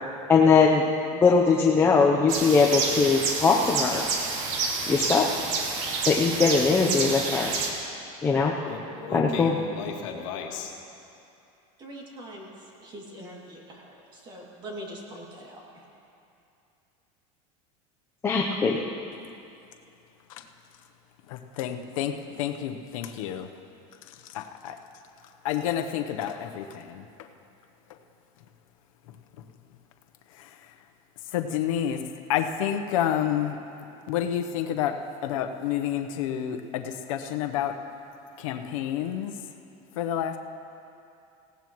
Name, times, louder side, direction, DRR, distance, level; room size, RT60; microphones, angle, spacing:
voice 1, 0.3-0.9 1.1-4.0 4.9-5.3 6.1-7.5 8.2-8.5 9.1-9.5 18.2-18.8, left 5 dB, 15° left, -2 dB, 0.7 m, -21 dB
sound 1, 2.3-7.7, right 4 dB, 70° right, 2.2 m, -29 dB
voice 2, 8.7-10.7, left 6 dB, 65° left, 1 dB, 1.8 m, -35 dB
voice 3, 11.8-15.8, right 1 dB, 30° right, -2 dB, 2.5 m, -42 dB
voice 4, 21.3-23.5 24.1-24.8 25.4-27.3 27.9-28.0 29.1-29.2 30.3-30.7 31.3-33.6 34.1-37.8 38.4-39.4 39.9-40.4, left 10 dB, 90° left, 6 dB, 0.9 m, -29 dB
19.5 x 17.0 x 3.1 m, 2.6 s
supercardioid pair, 160°, 17 cm